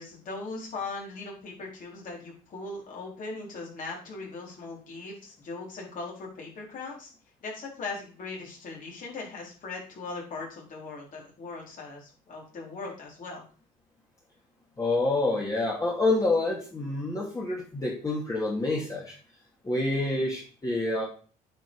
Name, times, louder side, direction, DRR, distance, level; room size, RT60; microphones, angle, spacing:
voice 1, 0.0-7.1 7.4-13.4, left 3 dB, 50° left, -2 dB, 4.4 m, -39 dB
voice 2, 14.8-19.1 19.6-21.0, left 2 dB, 20° left, -4 dB, 2.4 m, -27 dB
9.1 x 5.3 x 4.8 m, 0.38 s
cardioid pair, 110°, 17 cm